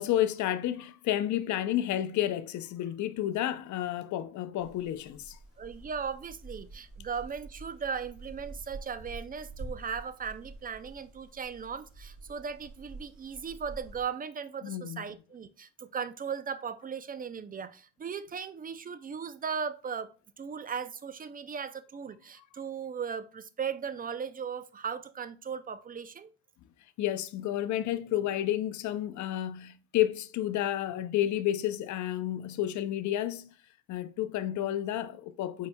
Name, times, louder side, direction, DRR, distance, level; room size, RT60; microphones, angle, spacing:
voice 1, 0.0-5.4 14.6-15.0 27.0-33.5 33.9-35.7, left 12 dB, 70° left, 0.5 m, -31 dB
sound 1, 4.6-14.0, right 3 dB, 50° right, 2.1 m, -47 dB
voice 2, 5.6-20.1 20.4-26.3, right 6 dB, 30° right, 0.4 m, -37 dB
4.7 x 4.2 x 2.2 m
cardioid pair, 90°, 30 cm